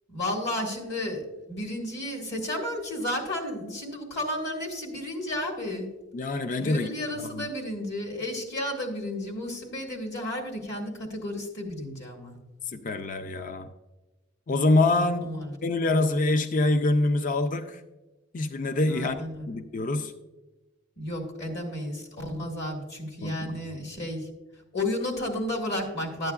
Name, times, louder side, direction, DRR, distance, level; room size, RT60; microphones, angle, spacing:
voice 1, 0.1-5.9 6.6-12.4 15.0-15.5 18.9-19.5 21.0-24.3 24.7-26.3, left 1 dB, 55° left, 1 dB, 1.7 m, -32 dB
voice 2, 6.1-6.9 7.2-7.5 12.7-13.7 14.5-15.3 15.6-17.8 18.3-20.1 23.2-23.6, left 2 dB, 40° left, 9 dB, 0.4 m, -25 dB
11.5 x 9.0 x 2.4 m, 1.1 s
head